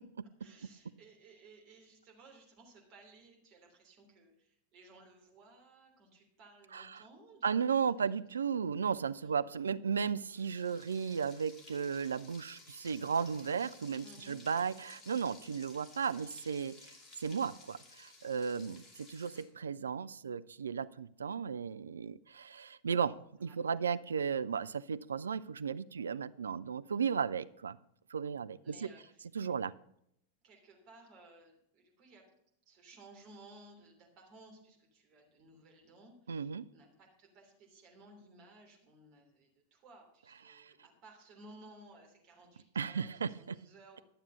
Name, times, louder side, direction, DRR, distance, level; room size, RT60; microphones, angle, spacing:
voice 1, 0.4-8.1 9.2-9.4 14.0-14.4 18.7-18.9 23.5-23.6 26.8-27.1 28.2-29.5 30.4-32.2 32.6-44.0, right 2 dB, 40° right, 2 dB, 3.2 m, -58 dB
voice 2, 6.7-7.0 7.4-16.8 17.2-27.8 28.1-28.9 29.3-29.7 36.3-36.7 40.5-40.7 42.8-43.6, right 6 dB, 70° right, 15 dB, 0.4 m, -35 dB
Frying (food), 10.3-19.4, left 3 dB, 20° left, 2.5 m, -56 dB
12.0 x 7.3 x 5.5 m, 0.73 s
figure-of-eight pair, 90°, 0 cm